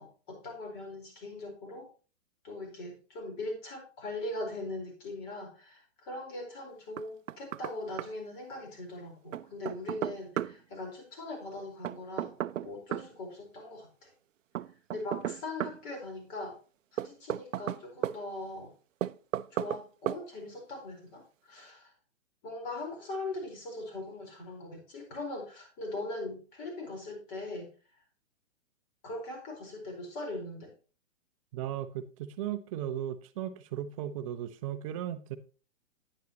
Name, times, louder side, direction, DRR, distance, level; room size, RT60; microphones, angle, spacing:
voice 1, 0.0-1.9 2.4-12.3 12.6-14.1 14.9-16.6 16.9-18.7 19.5-21.9 22.4-27.7 29.0-30.7, left 2 dB, 35° left, 4.3 m, -40 dB
Knock, 7.0-7.7 8.0-8.1 9.3-10.5 11.8-13.1 14.5-15.8 17.0-18.2 19.0-19.8 20.1-20.2, right 11 dB, 75° right, 0.5 m, -34 dB
voice 2, 31.5-35.4, right 11 dB, 25° right, 0.6 m, -36 dB
9.8 x 9.2 x 2.9 m
hypercardioid pair, 140°, 39 cm